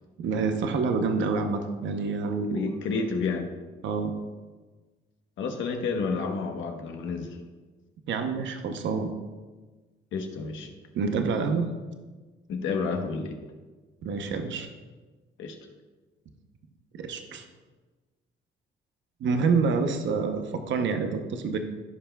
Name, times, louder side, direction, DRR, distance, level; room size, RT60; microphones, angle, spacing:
voice 1, 0.2-2.6 3.8-4.1 8.1-9.1 10.9-11.7 14.0-14.7 16.9-17.4 19.2-21.6, right 4 dB, 70° right, 6 dB, 0.8 m, -27 dB
voice 2, 2.5-3.5 5.4-7.4 10.1-10.7 12.5-13.4 15.4-15.6, left 4 dB, 75° left, 4 dB, 1.1 m, -30 dB
15.0 x 5.6 x 2.3 m, 1.3 s
cardioid pair, 90°, 20 cm